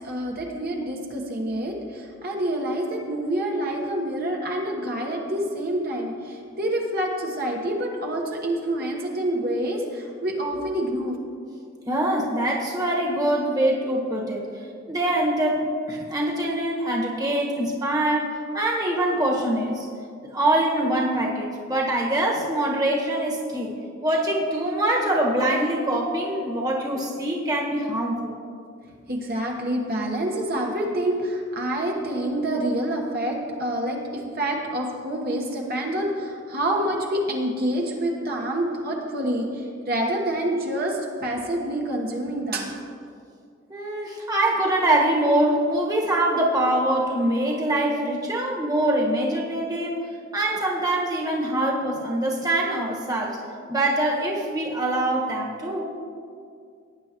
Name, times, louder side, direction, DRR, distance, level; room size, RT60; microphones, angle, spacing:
voice 1, 0.0-11.2 29.1-42.8, right 1 dB, 50° right, -1 dB, 1.2 m, -27 dB
voice 2, 11.8-14.5 14.9-19.9 20.2-23.7 24.0-28.3 43.7-50.1 50.3-53.4 53.7-55.9, right 1 dB, 20° right, -2 dB, 1.4 m, -24 dB
18.5 x 9.4 x 3.0 m, 2.3 s
head